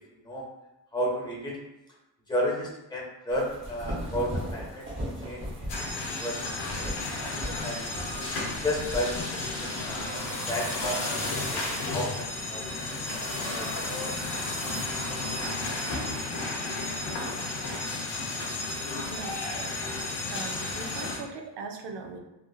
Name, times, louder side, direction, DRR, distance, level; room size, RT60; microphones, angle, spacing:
voice 1, 0.9-1.6 2.3-4.8 5.2-6.8 7.3-8.1 8.6-11.0 11.5-12.7 13.1-13.2 13.5-14.6, equal, 10° left, -3 dB, 0.6 m, -33 dB
sound 1, 3.3-10.1, equal, 30° right, 0.8 m, -38 dB
sound 2, 5.7-21.2, left 2 dB, 75° left, 0.8 m, -33 dB
sound 3, 9.4-16.2, left 1 dB, 50° left, 1.5 m, -38 dB
voice 2, 18.9-19.4 20.3-22.2, right 4 dB, 85° right, 4 dB, 0.6 m, -39 dB
3.4 x 2.4 x 2.3 m, 0.94 s
wide cardioid pair, 160°, 41 cm